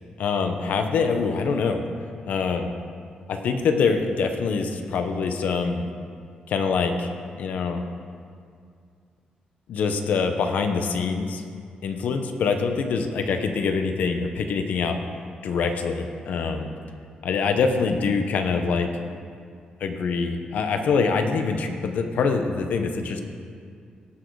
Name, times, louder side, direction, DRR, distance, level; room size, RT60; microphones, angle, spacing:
voice 1, 0.2-1.8 2.3-2.7 3.3-5.9 6.5-7.1 7.4-7.8 9.7-11.4 11.8-15.0 15.4-16.7 17.2-18.9 19.8-23.2, left 5 dB, 75° left, 6 dB, 0.9 m, -24 dB
17.0 x 6.4 x 4.8 m, 2.2 s
wide cardioid pair, 165°, 3 cm